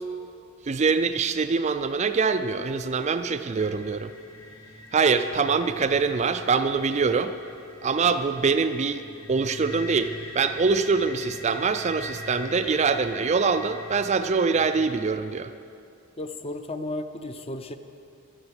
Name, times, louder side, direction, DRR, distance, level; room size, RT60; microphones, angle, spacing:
voice 1, 0.6-4.1 4.9-7.3 7.8-9.0 9.3-15.5, right 5 dB, 30° right, 9 dB, 0.4 m, -24 dB
sound 1, 3.6-15.0, left 1 dB, 65° left, 1.8 m, -43 dB
voice 2, 16.2-17.8, left 2 dB, 25° left, 8 dB, 0.6 m, -34 dB
12.5 x 11.0 x 8.1 m, 2.6 s
head